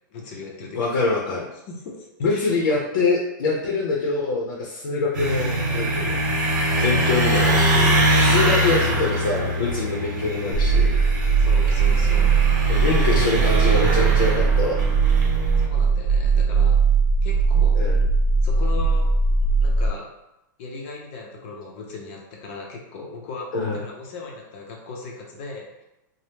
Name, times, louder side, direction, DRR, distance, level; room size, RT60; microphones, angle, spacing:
voice 1, 0.1-0.8 1.7-2.5 6.8-7.1 8.8-8.9 11.4-12.4 15.6-16.8 17.2-17.8 18.4-19.1 19.6-20.1 20.6-25.8, left 3 dB, 35° left, -1 dB, 0.6 m, -37 dB
voice 2, 0.7-1.5 2.2-6.1 6.8-10.9 12.7-14.8 17.8-18.0 23.5-23.8, left 4 dB, 80° left, -2 dB, 0.6 m, -24 dB
sound 1, 5.1-15.7, right 1 dB, 55° right, 1.0 m, -23 dB
sound 2, 10.5-19.9, right 5 dB, 85° right, 0.7 m, -19 dB
2.8 x 2.0 x 3.3 m, 0.92 s
supercardioid pair, 170°, 11 cm